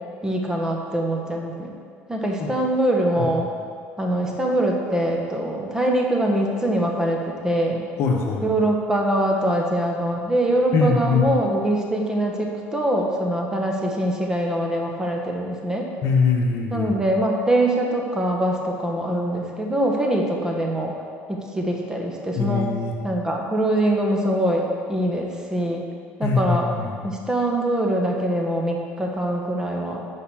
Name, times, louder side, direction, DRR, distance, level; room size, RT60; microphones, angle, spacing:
voice 1, 0.2-1.7 2.1-3.5 4.0-7.8 8.4-15.9 16.7-20.9 21.3-22.7 23.0-25.8 26.2-26.7 27.0-30.0, right 1 dB, 10° right, 0 dB, 1.3 m, -23 dB
voice 2, 8.0-8.5 10.7-11.3 16.0-16.9 22.3-22.9 26.2-27.0, left 4 dB, 60° left, 1 dB, 1.3 m, -22 dB
9.5 x 5.0 x 6.4 m, 2.1 s
cardioid pair, 110°, 5 cm